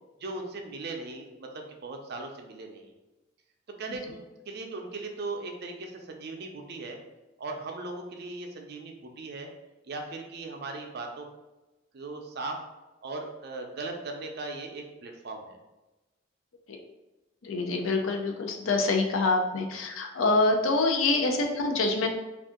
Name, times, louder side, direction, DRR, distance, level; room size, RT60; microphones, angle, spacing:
voice 1, 0.2-2.9 3.8-7.0 7.4-9.5 9.8-11.3 11.9-12.6 13.0-15.6, right 3 dB, 55° right, 3 dB, 0.5 m, -38 dB
voice 2, 17.4-22.1, left 3 dB, 80° left, 3 dB, 0.5 m, -26 dB
2.6 x 2.4 x 3.6 m, 1.1 s
head